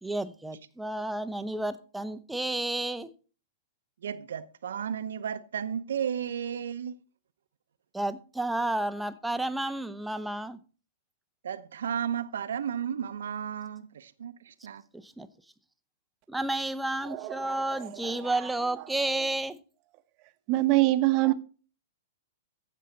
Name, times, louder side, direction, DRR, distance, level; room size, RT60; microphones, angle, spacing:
voice 1, 0.0-3.1 7.9-10.6 15.0-15.3 16.3-19.6, right 2 dB, 5° right, 0.7 m, -31 dB
voice 2, 4.0-6.9 11.4-14.8, right 8 dB, 75° right, 0.7 m, -33 dB
voice 3, 17.1-18.3 20.5-21.3, right 18 dB, 40° right, 0.9 m, -26 dB
15.0 x 5.6 x 4.0 m
hypercardioid pair, 115°, 0 cm